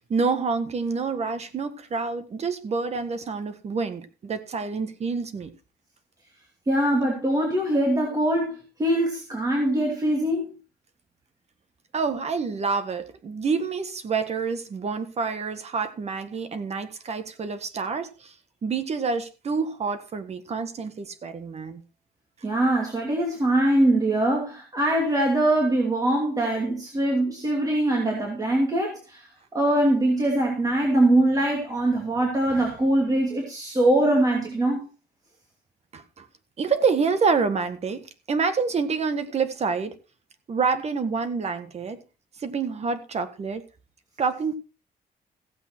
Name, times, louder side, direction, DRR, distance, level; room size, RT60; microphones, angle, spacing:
voice 1, 0.1-5.5 11.9-18.3 18.6-21.8 35.9-36.2 36.6-39.9 40.5-42.0 42.4-43.6 44.2-44.5, right 5 dB, 40° right, 10 dB, 1.6 m, -27 dB
voice 2, 6.7-10.5 22.4-29.2 29.5-34.8, right 1 dB, 20° right, -1 dB, 2.8 m, -22 dB
15.5 x 8.2 x 4.5 m, 0.32 s
cardioid pair, 160°, 17 cm